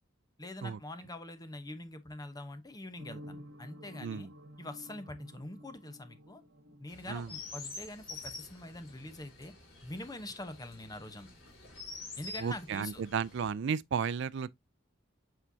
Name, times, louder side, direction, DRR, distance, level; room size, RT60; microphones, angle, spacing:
voice 1, 0.4-4.3 4.6-6.4 6.8-9.5 9.8-11.3 12.2-13.0, left 1 dB, 20° left, 0.9 m, -44 dB
sound 1, 3.0-7.7, equal, 80° right, 1.7 m, -51 dB
Chirp tweet, 6.9-13.5, left 3 dB, 85° left, 3.2 m, -47 dB
voice 2, 12.4-14.6, right 6 dB, 65° right, 0.4 m, -34 dB
8.1 x 4.4 x 2.7 m
head